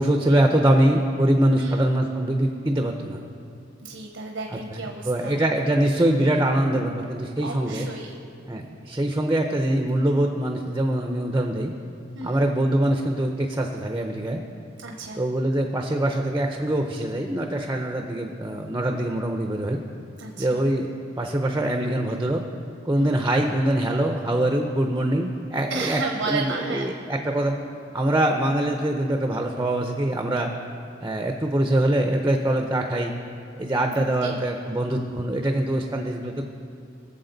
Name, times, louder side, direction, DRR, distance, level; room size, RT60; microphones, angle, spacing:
voice 1, 0.0-3.2 4.7-7.9 8.5-11.7 12.2-14.4 15.2-19.8 20.4-20.9 21.2-22.4 22.9-26.0 26.3-27.6 27.9-30.5 31.0-33.1 33.6-36.4, right 1 dB, 15° right, 4 dB, 0.5 m, -23 dB
voice 2, 1.5-2.0 3.8-5.4 7.4-8.2 12.1-12.5 14.8-15.2 20.2-20.7 22.9-23.2 25.7-26.8 33.9-34.4, right 3 dB, 85° right, 1 dB, 0.9 m, -33 dB
20.0 x 7.3 x 3.9 m, 2.5 s
head